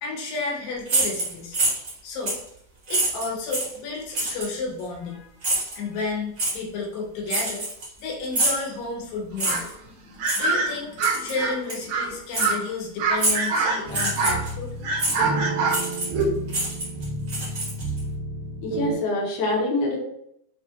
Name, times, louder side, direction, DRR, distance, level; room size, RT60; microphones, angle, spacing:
voice 1, 0.0-1.6 2.0-2.4 2.9-7.7 8.0-9.6 10.4-14.7, left 3 dB, 85° left, -1 dB, 2.7 m, -32 dB
sound 1, 0.9-1.9 2.3-2.5 2.9-3.8 4.1-4.5 5.4-5.8 6.4-6.6 7.3-8.0 8.3-8.7 9.4-9.7 10.2-10.4 11.0-11.3 11.7-11.8 12.3-12.5 13.2-13.5 13.9-14.5 15.0-15.2 15.7-16.2 16.5-18.0, right 2 dB, 55° right, 0.8 m, -26 dB
sound 2, 9.4-9.7 10.2-11.5 11.9-12.1 12.4-12.6 13.0-14.4 14.8-16.4, right 3 dB, 70° right, 1.9 m, -25 dB
sound 3, 13.9-19.0, right 2 dB, 90° right, 2.6 m, -31 dB
voice 2, 18.6-20.0, left 2 dB, 70° left, -1 dB, 2.0 m, -25 dB
6.0 x 2.3 x 2.8 m, 0.74 s
omnidirectional pair, 3.9 m